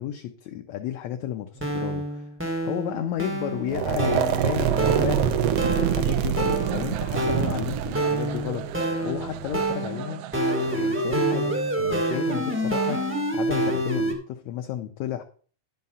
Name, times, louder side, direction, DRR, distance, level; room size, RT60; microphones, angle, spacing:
voice 1, 0.0-2.3 2.6-5.4 5.7-8.7 9.0-10.2 10.7-15.2, left 11 dB, 70° left, 5 dB, 1.9 m, -32 dB
sound 1, 1.5-14.1, right 1 dB, 10° right, 0.7 m, -28 dB
sound 2, 3.7-9.7, right 10 dB, 70° right, 1.5 m, -26 dB
sound 3, 4.3-13.2, right 10 dB, 90° right, 2.2 m, -39 dB
10.5 x 5.7 x 5.5 m, 0.42 s
omnidirectional pair, 3.8 m